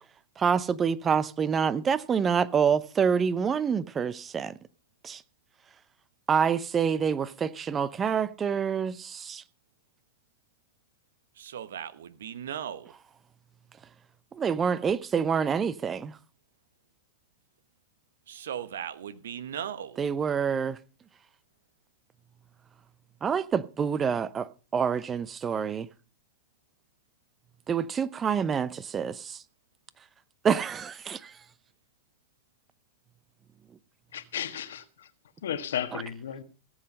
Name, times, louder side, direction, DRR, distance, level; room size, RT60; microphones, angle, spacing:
voice 1, 0.4-4.5 5.0-5.2 6.3-9.4 14.3-16.1 20.0-20.8 23.2-25.9 27.7-29.4 30.4-31.3 35.9-36.0, right 7 dB, 25° right, 0.8 m, -27 dB
voice 2, 11.4-12.9 18.3-20.0, right 9 dB, 75° right, 1.1 m, -37 dB
voice 3, 34.1-35.1 35.4-36.4, left 9 dB, 75° left, 1.4 m, -34 dB
16.5 x 7.6 x 5.4 m
hypercardioid pair, 100°, 0 cm